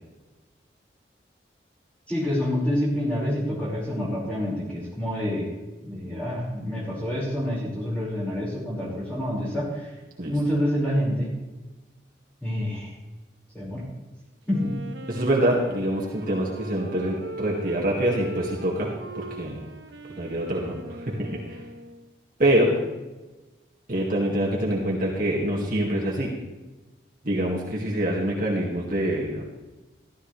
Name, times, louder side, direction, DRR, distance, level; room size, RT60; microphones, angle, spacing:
voice 1, 2.1-5.5 5.8-9.9 10.3-11.3 12.4-12.9 13.5-13.9 14.5-14.7, equal, 10° left, -6 dB, 5.2 m, -27 dB
Wind instrument woodwind instrument, 14.5-22.2, right 2 dB, 85° right, 1.1 m, -40 dB
voice 2, 15.1-18.9 19.1-19.6 20.1-21.6 22.4-22.8 23.9-26.3 27.2-29.4, right 1 dB, 50° right, -4 dB, 2.1 m, -25 dB
14.0 x 13.5 x 3.3 m, 1.1 s
head